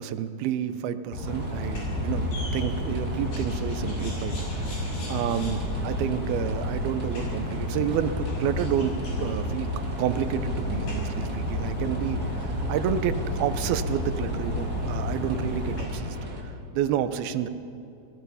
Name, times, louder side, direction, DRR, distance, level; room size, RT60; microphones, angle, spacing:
voice 1, 0.0-9.7 10.0-16.2 16.4-17.5, right 9 dB, 90° right, 11 dB, 2.8 m, -30 dB
sound 1, 1.1-15.8, left 1 dB, 80° left, 8.0 m, -31 dB
sound 2, 1.3-16.4, equal, 30° right, 2.2 m, -39 dB
28.0 x 20.0 x 5.7 m, 2.8 s
omnidirectional pair, 4.3 m